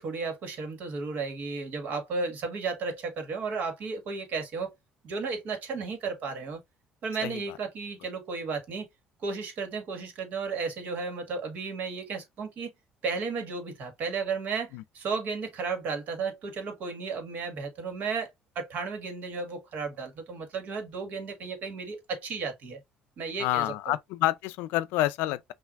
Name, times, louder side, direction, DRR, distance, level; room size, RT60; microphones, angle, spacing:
voice 1, 0.0-4.7 5.0-6.6 7.0-8.9 9.2-12.7 13.0-18.3 18.5-22.8 23.2-23.9, right 4 dB, 60° right, 1.7 m, -34 dB
voice 2, 7.2-7.6 14.7-14.8 23.4-25.5, left 15 dB, 90° left, 0.4 m, -28 dB
5.8 x 2.6 x 2.5 m
cardioid pair, 115°, 3 cm